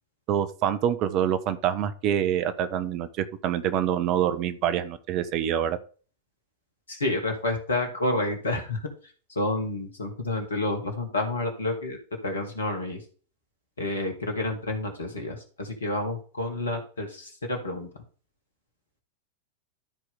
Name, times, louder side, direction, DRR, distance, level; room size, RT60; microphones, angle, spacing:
voice 1, 0.3-5.8, right 10 dB, 40° right, 12 dB, 0.8 m, -26 dB
voice 2, 6.9-8.8 9.4-12.0 12.2-13.0 13.8-17.9, left 2 dB, 70° left, 5 dB, 2.1 m, -29 dB
13.0 x 4.7 x 3.7 m, 0.39 s
figure-of-eight pair, 90°, 0 cm